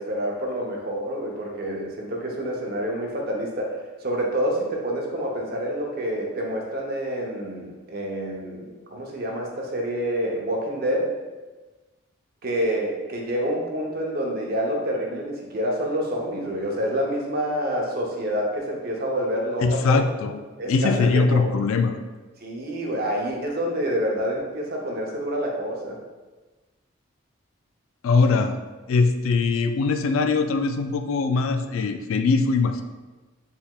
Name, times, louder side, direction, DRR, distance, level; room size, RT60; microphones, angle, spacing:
voice 1, 0.0-3.7 4.0-11.2 12.4-20.0 20.6-21.5 22.4-26.0, equal, 45° right, -1 dB, 0.7 m, -27 dB
voice 2, 19.6-20.4 20.7-22.0 28.0-28.6 28.9-32.8, left 4 dB, 75° left, 8 dB, 0.3 m, -21 dB
4.5 x 3.4 x 2.3 m, 1.2 s
head